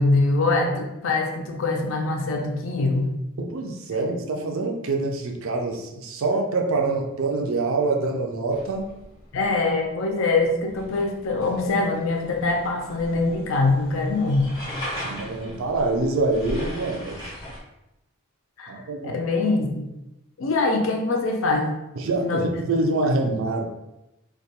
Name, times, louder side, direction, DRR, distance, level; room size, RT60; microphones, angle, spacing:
voice 1, 0.0-3.1 9.3-14.5 18.6-19.9 20.4-21.7 22.2-22.4, left 3 dB, 65° left, 2 dB, 0.4 m, -23 dB
voice 2, 3.5-8.9 14.9-17.2 18.7-19.2 22.0-23.6, right 3 dB, 65° right, 2 dB, 0.4 m, -25 dB
sound 1, 8.5-17.6, equal, 20° left, 0.5 m, -39 dB
2.3 x 2.2 x 2.8 m, 0.92 s
head